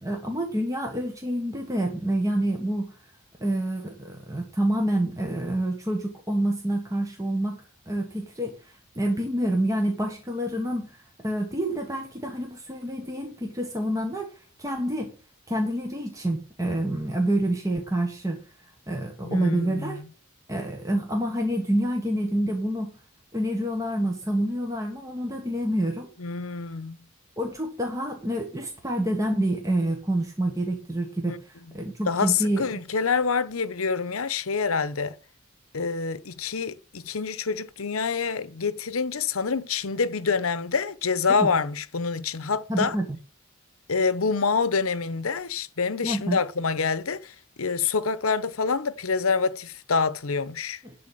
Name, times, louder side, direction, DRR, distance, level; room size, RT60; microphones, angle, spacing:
voice 1, 0.0-2.9 3.4-7.6 7.9-11.0 11.2-14.3 14.6-15.1 15.5-18.4 18.9-20.0 20.5-22.9 23.3-26.1 27.4-32.7 41.4-41.5 42.7-43.0 46.0-46.4 50.8-50.9, right 1 dB, 15° right, 1.5 m, -27 dB
voice 2, 19.2-20.0 26.2-27.0 31.2-31.4 32.1-35.1 35.7-43.0 43.9-50.8, left 5 dB, 85° left, 0.9 m, -26 dB
12.0 x 4.1 x 7.8 m
head